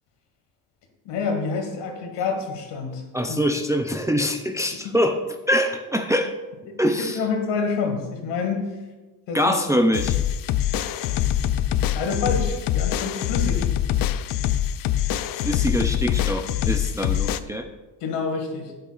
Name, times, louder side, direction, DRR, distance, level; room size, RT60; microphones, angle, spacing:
voice 1, 1.1-3.0 3.3-3.4 4.8-4.9 6.7-8.7 9.3-9.6 11.9-13.7 18.0-18.7, left 4 dB, 85° left, 3 dB, 2.1 m, -27 dB
voice 2, 3.1-5.2 5.5-6.3 6.8-7.2 9.3-10.2 15.4-17.7, equal, 10° right, 4 dB, 0.3 m, -23 dB
sound 1, 9.9-17.4, left 11 dB, 55° left, 0.5 m, -24 dB
12.0 x 9.0 x 2.4 m, 1.2 s
cardioid pair, 145°, 41 cm